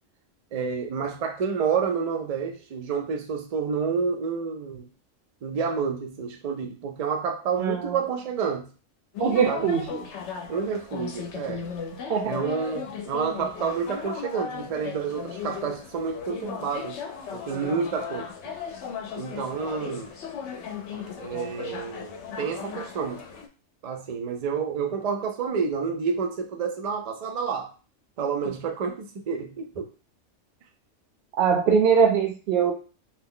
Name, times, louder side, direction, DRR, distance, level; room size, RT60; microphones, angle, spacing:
voice 1, 0.5-4.9 5.4-8.7 9.5-9.7 10.5-11.7 12.2-17.0 17.3-18.3 19.2-20.1 20.9-23.2 23.8-27.7 28.2-29.9, right 6 dB, 85° right, 0.3 m, -29 dB
voice 2, 7.6-8.0 9.2-10.1 12.1-12.3 31.4-32.7, right 6 dB, 60° right, 0.8 m, -22 dB
sound 1, 9.1-23.5, left 6 dB, 70° left, 0.8 m, -37 dB
2.8 x 2.1 x 3.6 m
omnidirectional pair, 1.3 m